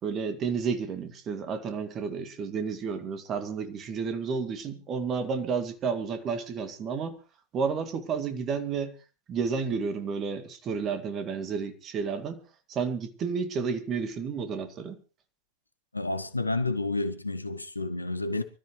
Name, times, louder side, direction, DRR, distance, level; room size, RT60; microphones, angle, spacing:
voice 1, 0.0-7.2 7.5-9.0 9.3-12.4 12.7-15.0, right 5 dB, 30° right, 2.3 m, -31 dB
voice 2, 15.9-18.4, left 2 dB, 85° left, 1.2 m, -30 dB
25.0 x 13.5 x 3.1 m
figure-of-eight pair, 90°, 0 cm